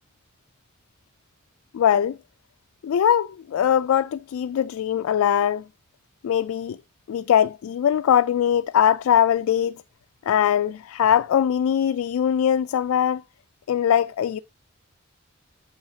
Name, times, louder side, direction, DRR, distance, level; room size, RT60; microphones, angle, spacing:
voice 1, 1.7-2.2 2.8-5.6 6.2-6.8 7.1-9.8 10.3-13.2 13.7-14.4, left 9 dB, 80° left, 0.3 m, -21 dB
8.8 x 6.4 x 2.7 m
head